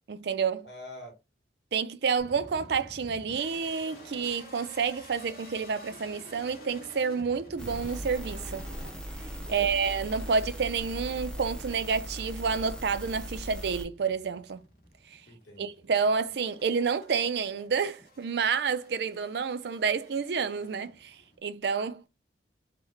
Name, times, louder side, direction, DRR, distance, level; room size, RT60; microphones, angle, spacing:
voice 1, 0.1-0.7 1.7-8.7 9.5-14.6 15.1-15.2 15.6-21.2 21.4-22.1, right 5 dB, 70° right, 0.4 m, -29 dB
voice 2, 0.6-1.2 9.4-9.7 15.3-15.9, left 1 dB, 75° left, 1.3 m, -46 dB
sound 1, 2.2-21.4, equal, 55° left, 1.1 m, -51 dB
sound 2, 7.6-13.8, equal, 5° left, 0.4 m, -39 dB
3.9 x 2.1 x 3.2 m
head